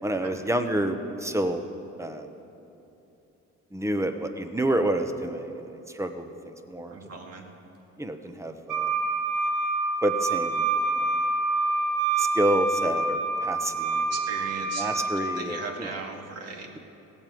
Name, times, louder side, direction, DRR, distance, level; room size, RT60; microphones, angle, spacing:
voice 1, 0.0-1.6 2.0-2.3 3.7-5.6 5.9-7.0 8.0-8.9 10.0-10.6 12.2-14.1 14.8-15.9, right 1 dB, 10° right, 7 dB, 1.1 m, -28 dB
voice 2, 6.9-7.4 13.9-16.7, right 4 dB, 55° right, 2 dB, 2.1 m, -38 dB
Wind instrument woodwind instrument, 8.7-15.4, right 3 dB, 85° right, 1.9 m, -27 dB
16.5 x 8.7 x 7.8 m, 2.9 s
cardioid pair, 90°, 30 cm